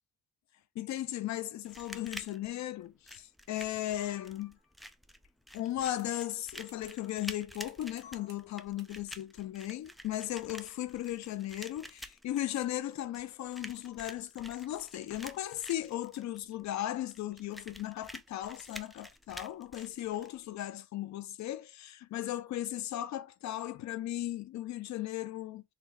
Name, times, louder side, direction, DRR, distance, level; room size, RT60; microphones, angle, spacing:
voice 1, 0.8-4.6 5.5-25.6, left 13 dB, 65° left, 0.6 m, -37 dB
sound 1, 1.6-20.6, equal, ahead, 0.3 m, -49 dB
sound 2, 3.5-4.8 6.2-6.3 8.0-8.4, left 5 dB, 90° left, 1.2 m, -57 dB
sound 3, 6.0-7.2 7.5-8.5 8.8-9.0 9.7-9.9, right 4 dB, 35° right, 1.2 m, -61 dB
4.1 x 2.7 x 2.4 m
cardioid pair, 90°, 30 cm